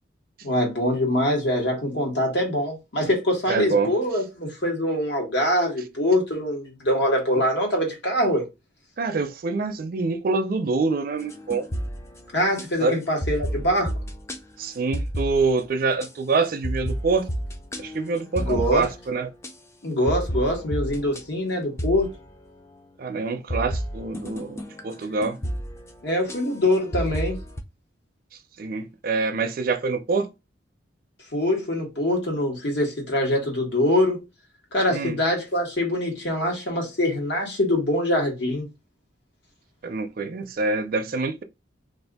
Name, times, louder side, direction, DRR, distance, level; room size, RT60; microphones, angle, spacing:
voice 1, 0.4-8.4 12.3-13.9 18.4-18.9 19.8-22.1 26.0-27.4 31.3-34.2 34.7-38.7, left 1 dB, 70° left, 1.4 m, -24 dB
voice 2, 3.5-3.9 7.4-7.5 9.0-11.7 12.8-13.0 14.6-17.3 17.8-19.3 23.0-25.4 28.6-30.3 34.9-35.2 39.8-41.4, right 4 dB, 50° right, 0.4 m, -25 dB
sound 1, 11.1-12.7 13.2-14.4 14.9-15.7 16.0-16.1 16.6-19.5 20.1-21.2 21.8-22.6 23.5-27.6, equal, 15° left, 0.3 m, -31 dB
2.6 x 2.5 x 3.5 m
head